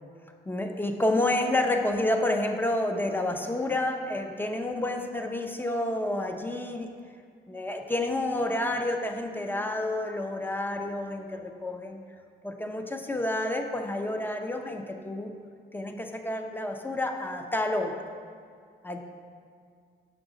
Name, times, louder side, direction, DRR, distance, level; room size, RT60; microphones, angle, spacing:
voice 1, 0.5-6.9 7.5-12.0 12.4-15.3 15.7-18.0 18.8-19.0, left 1 dB, 10° left, 4 dB, 0.7 m, -29 dB
6.2 x 6.1 x 3.9 m, 2.2 s
cardioid pair, 65°, 20 cm